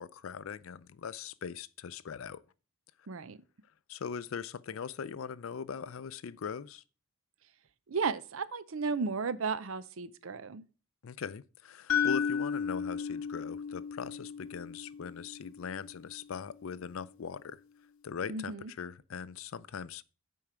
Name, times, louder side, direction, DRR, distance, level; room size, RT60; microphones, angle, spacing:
voice 1, 0.0-2.4 3.9-6.8 11.0-17.6 18.0-20.0, left 6 dB, 70° left, 0.4 m, -40 dB
voice 2, 3.1-3.4 7.9-10.6 18.3-18.7, right 5 dB, 70° right, 0.6 m, -34 dB
sound 1, 11.9-16.0, left 7 dB, 90° left, 0.9 m, -34 dB
8.7 x 4.7 x 5.0 m
head